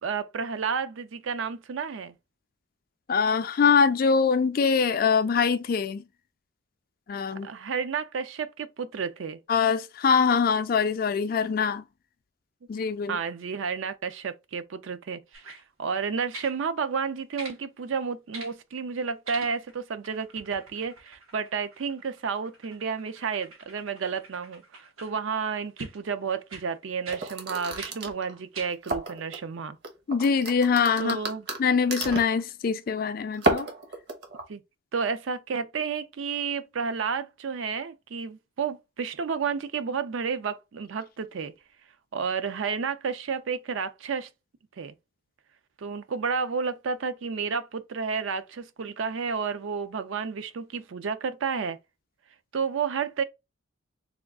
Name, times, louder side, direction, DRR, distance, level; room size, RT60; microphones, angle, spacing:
voice 1, 0.0-2.1 7.4-9.4 13.1-15.2 15.5-29.8 31.0-31.5 34.5-34.6 34.9-41.5 42.1-44.3 44.8-44.9 45.8-51.8 52.5-53.2, right 5 dB, 70° right, 0.4 m, -31 dB
voice 2, 3.1-6.0 7.1-7.5 9.5-11.8 12.7-13.2 30.1-31.2 31.6-33.7, left 6 dB, 45° left, 0.3 m, -23 dB
sound 1, 15.3-15.6 16.3-16.6 17.4-17.6 18.3-18.6 19.2-19.8 20.0-25.1 25.8-26.0 26.5-26.7 27.0-27.2 27.8-27.9 28.5-28.7 29.4-29.5, right 2 dB, 90° right, 1.2 m, -45 dB
sound 2, 27.1-29.4 29.8-32.4 33.3-34.4, right 2 dB, 55° right, 0.9 m, -30 dB
3.5 x 2.3 x 3.5 m
head